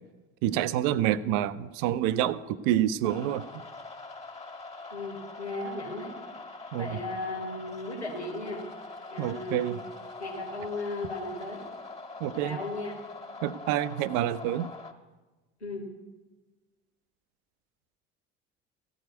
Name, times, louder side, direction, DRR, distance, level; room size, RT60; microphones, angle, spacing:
voice 1, 0.4-3.5 6.7-7.0 9.2-9.8 12.2-12.6 13.4-14.7, right 12 dB, 60° right, 15 dB, 0.6 m, -27 dB
sound 1, 3.0-14.9, left 3 dB, 20° left, 1.7 m, -43 dB
voice 2, 4.9-6.1 6.7-8.6 9.1-9.8 10.2-11.6 12.4-13.0 15.6-15.9, left 2 dB, 90° left, 1 dB, 1.8 m, -35 dB
15.0 x 5.0 x 9.4 m, 1.2 s
figure-of-eight pair, 60°, 32 cm